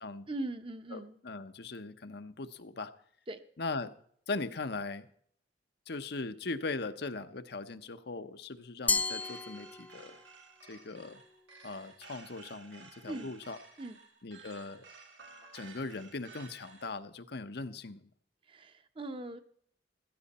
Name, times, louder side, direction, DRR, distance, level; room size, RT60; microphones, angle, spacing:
voice 1, 0.3-1.2 3.3-3.4 13.0-13.3 13.8-14.0 18.5-19.4, right 2 dB, 30° right, 9 dB, 0.9 m, -40 dB
voice 2, 0.9-2.9 3.6-3.9 4.3-5.1 5.9-10.2 10.7-11.2 11.6-13.6 14.2-14.8 15.5-18.1, left 3 dB, 65° left, 10 dB, 0.9 m, -39 dB
sound 1, 8.8-17.0, right 4 dB, 85° right, 2.2 m, -54 dB
Glass, 8.9-10.3, left 3 dB, 10° left, 0.5 m, -33 dB
15.5 x 14.0 x 4.2 m, 0.62 s
head